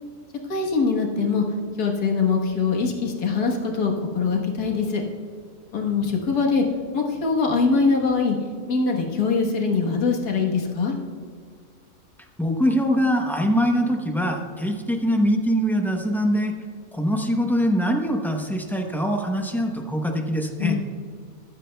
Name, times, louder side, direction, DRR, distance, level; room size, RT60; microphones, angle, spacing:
voice 1, 0.5-1.4 1.8-5.0 5.7-6.6 6.9-8.4 8.7-11.0 20.6-20.8, left 4 dB, 90° left, 1 dB, 1.8 m, -22 dB
voice 2, 12.4-16.6 16.9-20.8, equal, ahead, 2 dB, 0.4 m, -23 dB
15.0 x 11.5 x 2.2 m, 2.1 s
omnidirectional pair, 1.6 m